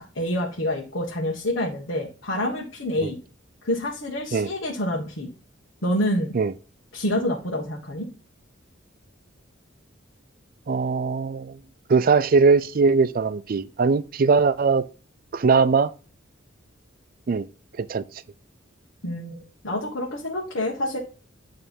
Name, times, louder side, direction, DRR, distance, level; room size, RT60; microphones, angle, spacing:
voice 1, 0.1-3.2 3.6-5.3 5.8-6.3 6.9-8.1 19.0-21.0, left 1 dB, 70° left, 1.5 m, -27 dB
voice 2, 10.7-11.6 11.9-14.8 15.3-15.9 17.3-17.5 17.8-18.0, right 4 dB, 45° right, 0.4 m, -20 dB
9.7 x 3.4 x 5.3 m
head